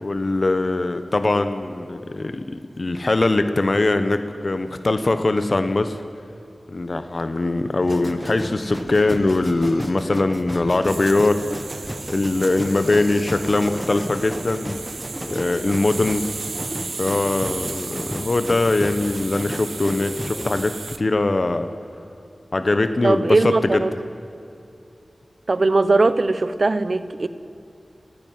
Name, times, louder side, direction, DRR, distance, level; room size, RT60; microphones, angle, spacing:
voice 1, 0.0-6.0 6.7-11.4 12.1-14.8 15.3-16.3 17.0-21.7 22.5-23.8, left 2 dB, 55° left, 9 dB, 1.2 m, -21 dB
sound 1, 7.8-20.6, equal, 5° right, 1.4 m, -34 dB
sound 2, 8.4-10.1 10.5-11.1 11.5-13.5 14.7-14.8 15.1-15.4, left 1 dB, 70° left, 4.2 m, -43 dB
sound 3, 8.7-21.0, right 4 dB, 85° right, 0.9 m, -36 dB
voice 2, 23.0-23.9 25.5-27.3, right 3 dB, 60° right, 13 dB, 1.1 m, -19 dB
30.0 x 10.5 x 9.5 m, 2.7 s
wide cardioid pair, 60°, 0 cm